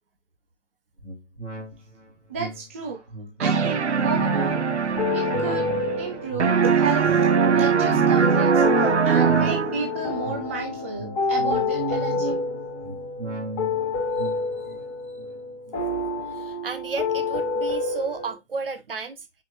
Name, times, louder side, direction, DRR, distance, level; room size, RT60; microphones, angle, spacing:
sound 1, 1.0-16.7 17.2-17.3, right 3 dB, 85° right, 3.3 m, -36 dB
voice 1, 2.3-3.0 3.4-4.6 5.1-5.7 6.0-12.4, right 5 dB, 10° right, 0.6 m, -32 dB
sound 2, 3.4-6.1 6.4-10.0, right 6 dB, 70° right, 0.8 m, -21 dB
sound 3, 4.1-18.4, left 3 dB, 30° left, 2.8 m, -29 dB
voice 2, 14.2-14.9 16.3-19.3, right 4 dB, 50° right, 1.8 m, -34 dB
8.0 x 5.1 x 2.8 m
figure-of-eight pair, 145°, 35 cm